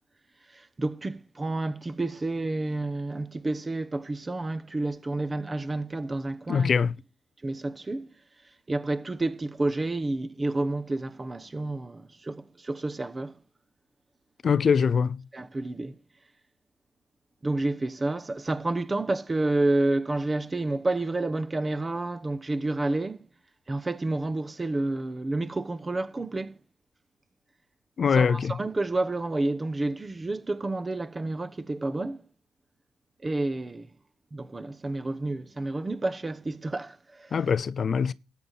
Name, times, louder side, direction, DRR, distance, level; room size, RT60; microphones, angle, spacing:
voice 1, 0.5-6.7 7.4-8.1 8.7-13.4 14.5-14.6 15.3-15.9 17.4-23.3 23.7-26.6 28.1-32.2 33.2-33.9 34.3-37.4, right 2 dB, 20° right, 1.0 m, -30 dB
voice 2, 6.5-6.9 14.4-15.2 28.0-28.5 37.3-38.1, left 6 dB, 45° left, 0.5 m, -23 dB
13.0 x 9.1 x 4.1 m
cardioid pair, 90°, 0 cm